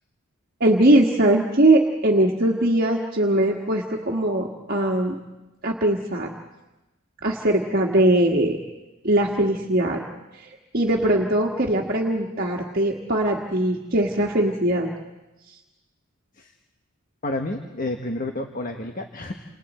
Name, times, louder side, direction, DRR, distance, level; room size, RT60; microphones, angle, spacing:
voice 1, 0.6-5.1 5.6-6.3 7.2-8.6 9.0-10.0 10.4-14.9, right 1 dB, 50° right, -1 dB, 1.7 m, -21 dB
voice 2, 17.2-19.3, left 2 dB, 45° left, 4 dB, 1.3 m, -30 dB
29.5 x 28.0 x 4.4 m, 1.0 s
head